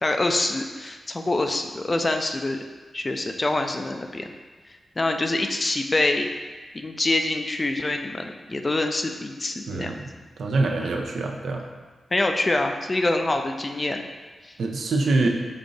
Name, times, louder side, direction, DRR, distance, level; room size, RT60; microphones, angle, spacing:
voice 1, 0.0-2.6 2.9-4.3 5.0-6.3 6.7-9.9 10.8-11.0 12.1-14.0 14.4-14.5, left 2 dB, 30° left, 5 dB, 0.4 m, -25 dB
voice 2, 9.7-10.1 10.4-11.7 14.6-15.3, right 3 dB, 75° right, 2 dB, 0.5 m, -24 dB
5.2 x 2.5 x 3.8 m, 1.4 s
cardioid pair, 65°, 0 cm